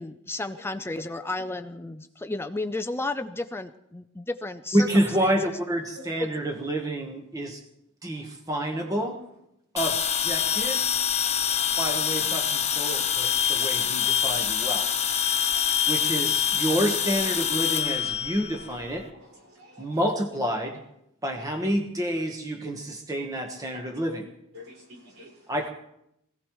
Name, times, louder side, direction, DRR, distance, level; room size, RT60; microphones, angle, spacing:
voice 1, 0.0-5.3 6.2-6.3, left 2 dB, 10° left, 0.5 m, -33 dB
voice 2, 4.7-7.6 8.0-9.2 9.7-10.9 11.8-14.9 15.9-19.1 19.8-20.8 21.2-24.3 25.5-25.7, equal, 15° right, 1.2 m, -28 dB
sound 1, 9.8-19.0, left 8 dB, 30° left, 1.0 m, -25 dB
voice 3, 11.8-12.4 12.9-13.3 19.1-20.0 24.5-25.4, equal, 70° right, 5.2 m, -45 dB
24.5 x 16.5 x 3.1 m
head